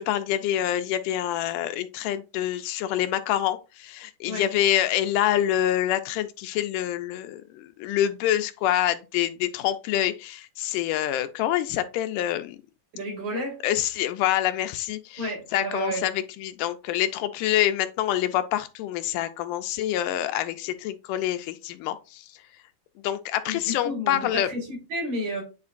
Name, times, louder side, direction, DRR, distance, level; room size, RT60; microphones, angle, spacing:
voice 1, 0.0-12.6 13.6-22.3 23.0-24.5, left 12 dB, 80° left, 2.1 m, -26 dB
voice 2, 12.9-13.6 15.2-16.0 23.4-25.4, equal, 60° right, 4.8 m, -31 dB
9.5 x 4.4 x 2.5 m
omnidirectional pair, 3.8 m